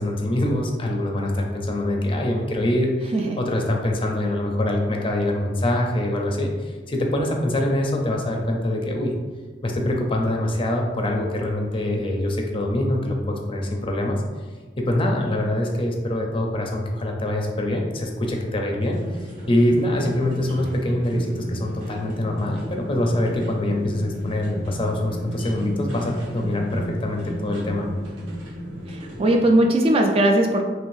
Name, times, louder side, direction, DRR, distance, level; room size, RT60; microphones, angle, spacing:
voice 1, 0.0-9.1 9.6-14.2 14.8-27.9, left 1 dB, 30° left, 1 dB, 0.5 m, -24 dB
sound 1, 18.8-29.5, equal, 75° right, 1.0 m, -35 dB
voice 2, 29.2-30.6, right 1 dB, 30° right, 3 dB, 0.3 m, -18 dB
4.8 x 3.1 x 2.6 m, 1.4 s
head